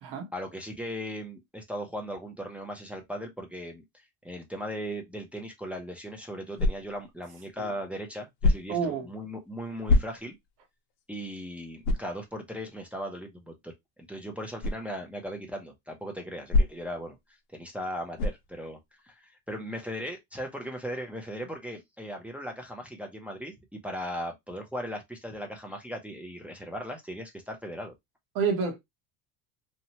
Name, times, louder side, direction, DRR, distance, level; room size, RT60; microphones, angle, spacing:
voice 1, 0.3-3.8 4.2-10.3 11.1-13.7 14.1-17.2 17.5-18.8 19.0-27.9, equal, 5° right, 0.4 m, -38 dB
sound 1, 6.6-7.1 8.4-8.9 9.9-10.5 11.0-11.1 11.8-12.2 14.6-14.9 16.5-17.0 18.2-18.5, left 2 dB, 85° left, 0.7 m, -25 dB
voice 2, 8.7-9.1 28.3-28.8, right 6 dB, 60° right, 1.0 m, -28 dB
2.8 x 2.1 x 2.8 m
cardioid pair, 145°, 39 cm